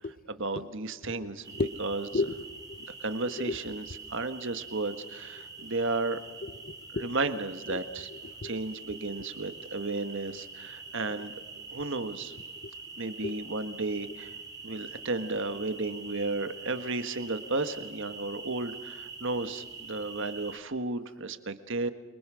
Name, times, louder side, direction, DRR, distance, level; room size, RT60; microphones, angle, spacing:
voice 1, 0.3-2.1 3.0-6.2 6.9-8.1 8.4-11.3 11.7-12.3 13.0-14.3 14.6-21.9, right 3 dB, 60° right, 1.5 m, -33 dB
sound 1, 1.4-20.6, right 4 dB, 15° right, 3.1 m, -45 dB
voice 2, 2.1-2.8 3.5-3.6 6.4-7.2 7.7-7.8 8.2-8.5 12.6-12.7 13.2-13.4, left 3 dB, 40° left, 0.9 m, -33 dB
28.5 x 23.5 x 6.3 m
head